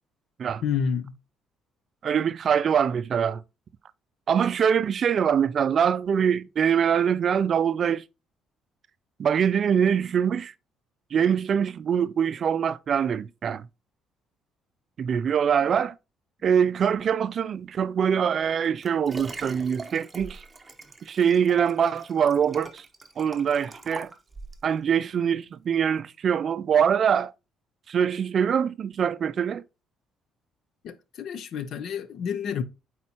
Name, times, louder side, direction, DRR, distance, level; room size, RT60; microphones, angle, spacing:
voice 1, 0.6-1.1 30.8-32.6, left 7 dB, 65° left, 0.7 m, -29 dB
voice 2, 2.0-3.4 4.3-8.0 9.2-10.5 11.1-13.7 15.0-15.9 16.4-20.4 21.1-22.8 23.2-24.1 24.6-27.3 27.9-29.6, right 7 dB, 50° right, 0.4 m, -23 dB
Liquid, 18.4-24.7 25.3-25.4, right 2 dB, 15° right, 0.9 m, -43 dB
8.3 x 4.2 x 2.9 m
cardioid pair, 95°, 0 cm